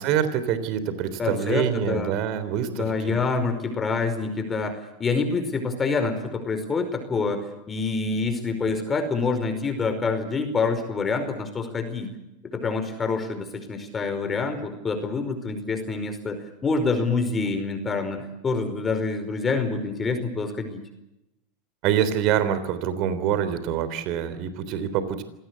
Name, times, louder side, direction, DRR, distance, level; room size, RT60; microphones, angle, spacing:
voice 1, 0.0-3.1 21.8-25.2, right 9 dB, 55° right, 12 dB, 3.6 m, -25 dB
voice 2, 1.2-2.1 2.7-12.1 12.4-20.8, left 4 dB, 25° left, 8 dB, 5.0 m, -27 dB
26.0 x 18.5 x 8.4 m, 0.87 s
hypercardioid pair, 105°, 0 cm